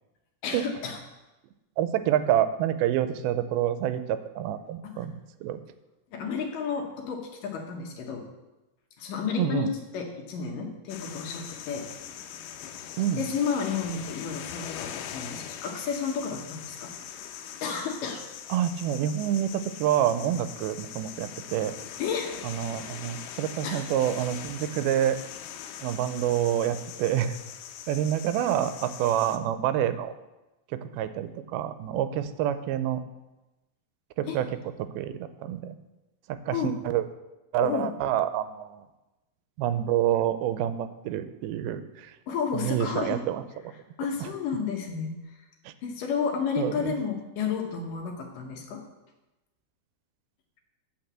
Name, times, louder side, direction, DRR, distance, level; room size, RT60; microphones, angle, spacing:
voice 1, 0.4-1.0 4.8-5.1 6.1-8.2 9.0-11.9 12.8-16.9 17.6-18.2 22.0-22.4 22.7-23.0 23.6-23.8 34.3-34.4 36.5-36.8 37.6-37.9 42.3-43.2 44.0-45.4 45.8-48.8, left 6 dB, 70° left, 2 dB, 2.6 m, -32 dB
voice 2, 1.8-5.6 9.4-9.7 13.0-13.2 18.5-21.8 22.4-25.2 25.8-27.4 27.9-30.1 30.8-33.0 34.2-34.5 34.8-35.8 36.3-37.0 37.5-38.9 39.6-42.1 42.5-43.4 44.2-44.3 45.7-45.8 46.6-46.9, right 11 dB, 85° right, 11 dB, 2.5 m, -27 dB
sound 1, 10.9-29.4, left 9 dB, 85° left, 2.6 m, -41 dB
8.7 x 5.9 x 7.4 m, 1.0 s
omnidirectional pair, 4.3 m